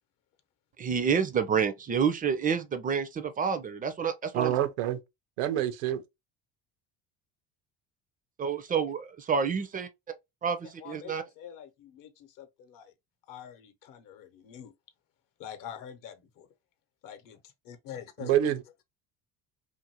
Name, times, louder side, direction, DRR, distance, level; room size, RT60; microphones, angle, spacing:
voice 1, 0.8-4.6 8.4-9.9 10.4-11.2, right 6 dB, 25° right, 0.4 m, -28 dB
voice 2, 4.3-5.0 5.4-6.0 18.2-18.8, right 11 dB, 90° right, 0.6 m, -27 dB
voice 3, 10.8-12.9 13.3-14.7 15.4-16.5 17.0-17.4 17.6-18.3, left 9 dB, 60° left, 0.8 m, -45 dB
2.6 x 2.5 x 2.7 m
supercardioid pair, 100°, 37 cm